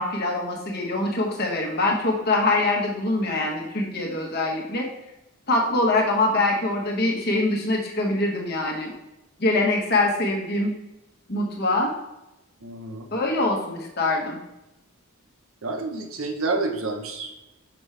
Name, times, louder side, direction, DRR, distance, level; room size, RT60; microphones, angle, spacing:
voice 1, 0.0-4.9 5.5-8.9 9.4-10.7 11.3-11.9 13.1-14.4, left 2 dB, 45° left, 0 dB, 1.2 m, -24 dB
voice 2, 12.6-13.1 15.6-17.5, right 3 dB, 70° right, 4 dB, 0.9 m, -29 dB
6.0 x 5.2 x 3.3 m, 0.95 s
head